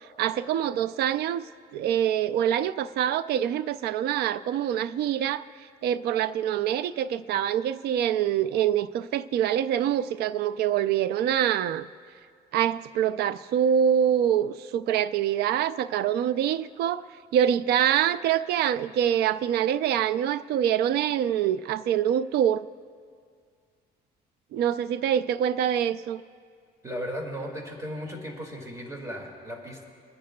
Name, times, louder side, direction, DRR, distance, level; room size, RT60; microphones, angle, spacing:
voice 1, 0.2-5.5 5.8-11.9 12.5-17.0 17.3-22.6 24.5-26.2, right 10 dB, 70° right, 15 dB, 0.4 m, -25 dB
voice 2, 26.8-29.8, equal, 20° right, 1 dB, 2.1 m, -36 dB
28.0 x 10.5 x 2.3 m, 2.1 s
cardioid pair, 110°, 17 cm